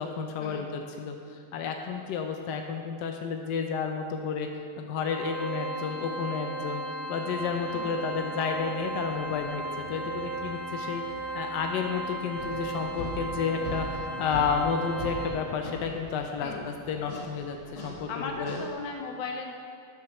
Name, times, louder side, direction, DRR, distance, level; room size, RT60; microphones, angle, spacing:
voice 1, 0.0-4.5 4.8-6.8 7.1-11.0 11.3-18.6, left 6 dB, 90° left, 4 dB, 0.9 m, -31 dB
Organ, 5.0-15.7, right 2 dB, 40° right, 2.2 m, -36 dB
sound 1, 7.3-15.0, right 1 dB, 80° right, 2.4 m, -49 dB
sound 2, 12.4-18.7, left 1 dB, 45° left, 0.4 m, -41 dB
voice 2, 18.1-19.5, left 4 dB, 65° left, 3 dB, 1.4 m, -37 dB
7.2 x 4.8 x 5.9 m, 2.3 s
omnidirectional pair, 2.4 m